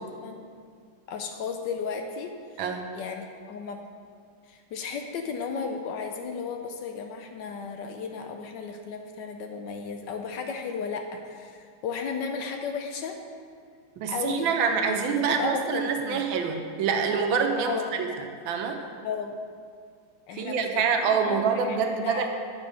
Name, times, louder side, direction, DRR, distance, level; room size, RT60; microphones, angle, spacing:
voice 1, 1.1-2.3 2.9-3.8 4.5-13.2 14.1-14.5 15.1-16.3 17.7-17.8 19.0-19.4 20.3-22.3, left 5 dB, 75° left, 5 dB, 1.1 m, -34 dB
voice 2, 14.0-18.1 18.5-18.9 20.3-22.3, right 6 dB, 80° right, 4 dB, 1.5 m, -26 dB
8.7 x 6.3 x 4.9 m, 2.1 s
omnidirectional pair, 2.2 m